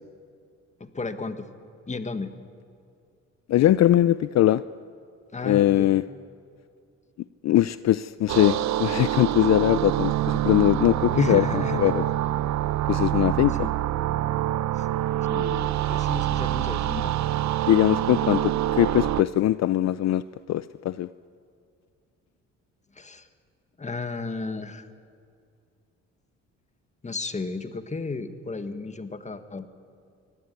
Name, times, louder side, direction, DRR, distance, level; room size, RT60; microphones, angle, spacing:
voice 1, 0.8-1.5 1.9-2.3 5.3-5.9 11.1-11.9 13.5-13.7 14.7-14.9 15.3-17.1 22.9-23.3 23.8-24.9 27.0-29.7, left 3 dB, 25° left, 9 dB, 1.7 m, -33 dB
voice 2, 3.5-4.6 5.4-6.0 7.4-12.0 12.9-13.7 17.7-20.2 20.5-21.1, left 13 dB, 60° left, 16 dB, 0.5 m, -21 dB
sound 1, 8.3-19.2, right 13 dB, 70° right, 0.6 m, -26 dB
23.5 x 17.5 x 9.7 m, 2.3 s
cardioid pair, 90°, 30 cm